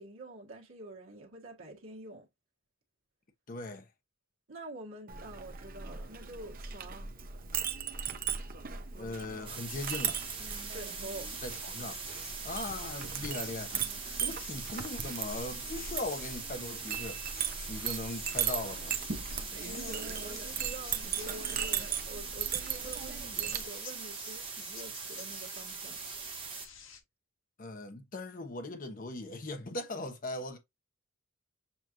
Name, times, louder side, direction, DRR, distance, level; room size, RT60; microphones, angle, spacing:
voice 1, 0.0-2.3 4.5-7.1 10.6-11.3 14.0-14.4 19.6-26.0, right 2 dB, 80° right, 1.5 m, -47 dB
voice 2, 3.5-3.9 9.0-10.2 11.4-12.0 12.4-13.8 14.2-17.3 17.7-19.0 27.6-30.6, left 2 dB, 45° left, 1.0 m, -39 dB
Chink clink, 5.1-23.6, right 8 dB, 45° right, 0.7 m, -38 dB
sound 1, 9.5-26.7, right 6 dB, 25° right, 1.2 m, -42 dB
sound 2, 9.7-27.0, left 6 dB, 70° left, 1.1 m, -50 dB
7.0 x 2.5 x 2.9 m
head